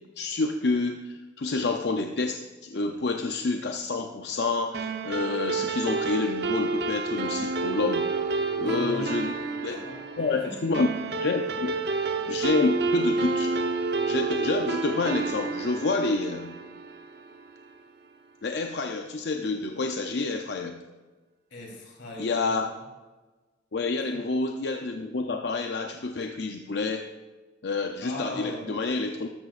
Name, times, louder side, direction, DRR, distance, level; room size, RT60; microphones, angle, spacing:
voice 1, 0.2-8.1 8.6-9.3 9.6-9.8 10.2-10.9 11.2-11.8 12.3-13.5 14.1-16.6 18.4-20.8 22.2-22.7 23.7-27.1 27.6-29.3, left 3 dB, 65° left, 4 dB, 0.6 m, -28 dB
sound 1, 4.7-17.5, right 3 dB, 60° right, 0.9 m, -29 dB
voice 2, 8.5-9.2 9.7-10.6 21.5-22.6 28.0-28.7, left 1 dB, 90° left, -1 dB, 3.6 m, -38 dB
13.5 x 13.0 x 2.5 m, 1.3 s
head